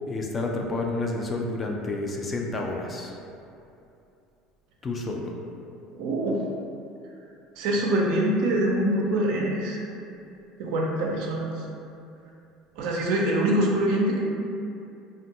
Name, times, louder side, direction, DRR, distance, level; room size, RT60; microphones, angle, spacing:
voice 1, 0.1-3.1 4.8-5.3, left 2 dB, 30° left, 1 dB, 0.4 m, -30 dB
voice 2, 5.9-6.4 7.6-9.8 10.6-11.6 12.8-14.2, right 1 dB, 70° right, -2 dB, 0.4 m, -24 dB
2.5 x 2.2 x 2.7 m, 2.6 s
hypercardioid pair, 75°, 0 cm